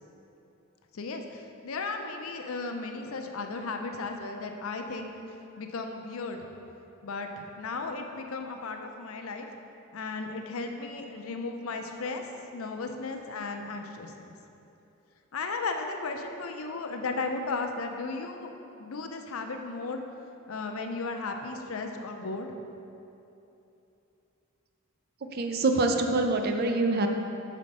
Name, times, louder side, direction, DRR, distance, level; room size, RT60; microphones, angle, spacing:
voice 1, 0.9-5.1 5.6-6.5 7.0-9.5 9.9-12.3 12.5-14.3 15.3-18.5 18.8-20.0 20.5-22.5, left 3 dB, 80° left, 5 dB, 0.6 m, -35 dB
voice 2, 25.2-27.1, right 2 dB, 45° right, 5 dB, 0.5 m, -25 dB
6.2 x 4.3 x 5.3 m, 2.9 s
head